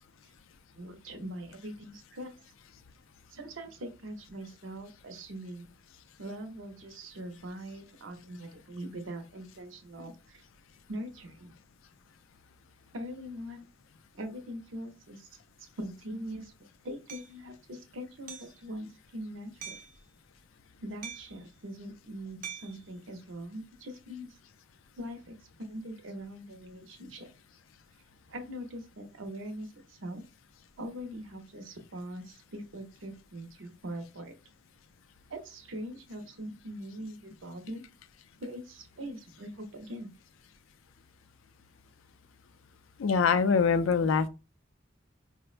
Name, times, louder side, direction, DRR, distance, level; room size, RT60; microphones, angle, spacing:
voice 1, 0.8-2.3 3.3-5.7 6.2-10.4 10.9-11.5 12.9-13.7 14.1-15.3 15.8-19.8 20.8-24.4 25.0-27.3 28.3-30.2 30.8-34.3 35.3-37.9 38.4-40.1, equal, 75° right, 0.7 m, -42 dB
Hammer, 17.1-17.3 18.3-18.6 19.6-20.0 21.0-21.4 22.4-22.8, right 8 dB, 45° right, 0.6 m, -43 dB
voice 2, 43.0-44.3, left 5 dB, 85° left, 0.4 m, -24 dB
4.4 x 2.1 x 2.4 m
head